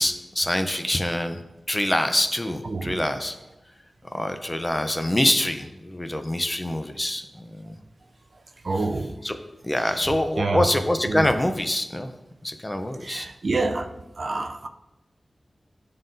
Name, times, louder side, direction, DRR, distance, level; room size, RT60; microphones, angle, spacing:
voice 1, 0.0-1.4 1.7-3.4 4.1-7.7 8.7-8.9 9.2-9.4 9.6-12.1 12.4-13.3, left 1 dB, 15° left, 0.5 m, -25 dB
voice 2, 2.7-3.1 8.6-9.1 10.4-10.7 11.0-11.3 13.0-13.9 14.2-14.7, right 3 dB, 55° right, 0.4 m, -27 dB
11.0 x 3.8 x 2.6 m
wide cardioid pair, 115°, 0 cm